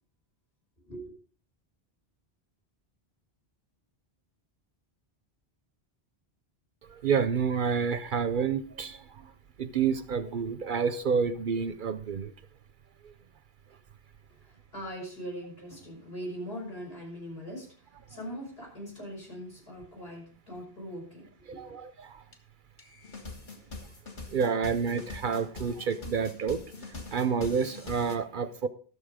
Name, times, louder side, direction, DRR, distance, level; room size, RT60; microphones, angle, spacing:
voice 1, 6.9-9.3 9.6-12.3 21.6-22.2 24.3-26.6 26.9-28.7, right 6 dB, 60° right, 13 dB, 0.7 m, -29 dB
voice 2, 14.3-21.6, equal, 70° left, -2 dB, 5.8 m, -41 dB
sound 1, 22.3-22.4 22.8-28.2, left 3 dB, 50° left, 1.5 m, -43 dB
12.5 x 6.7 x 4.9 m, 0.42 s
omnidirectional pair, 1.1 m